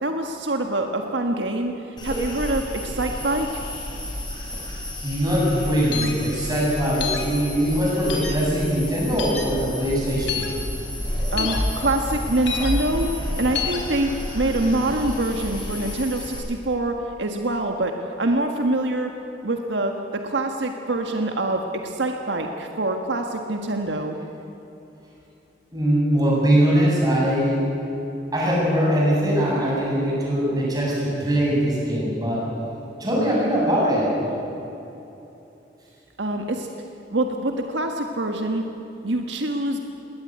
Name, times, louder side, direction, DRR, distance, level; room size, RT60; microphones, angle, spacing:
voice 1, 0.0-3.6 11.3-19.1 19.4-19.9 20.2-24.2 36.2-36.7 37.1-38.6 39.0-39.8, right 1 dB, 80° right, 4 dB, 1.6 m, -25 dB
sound 1, 2.0-16.4, equal, 25° left, 7.4 m, -30 dB
voice 2, 5.0-10.5 25.7-27.7 28.3-32.4 33.0-34.3, equal, 20° right, -4 dB, 7.5 m, -21 dB
sound 2, 5.9-6.1 7.0-7.3 8.1-8.3 9.2-9.4 10.3-10.5 11.4-11.6 12.5-12.7 13.5-13.8, left 8 dB, 75° left, 3.5 m, -28 dB
21.0 x 17.5 x 9.4 m, 3.0 s
head